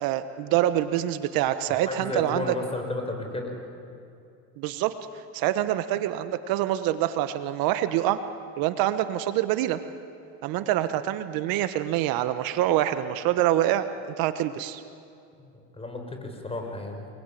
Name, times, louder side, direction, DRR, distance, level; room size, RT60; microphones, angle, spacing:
voice 1, 0.0-2.5 4.6-4.9 5.3-8.2 8.6-9.8 10.4-13.9 14.2-14.8, right 13 dB, 65° right, 11 dB, 1.3 m, -25 dB
voice 2, 1.8-3.6 15.7-17.1, left 2 dB, 15° left, 3 dB, 6.2 m, -33 dB
29.5 x 21.0 x 9.3 m, 2.5 s
supercardioid pair, 100°, 38 cm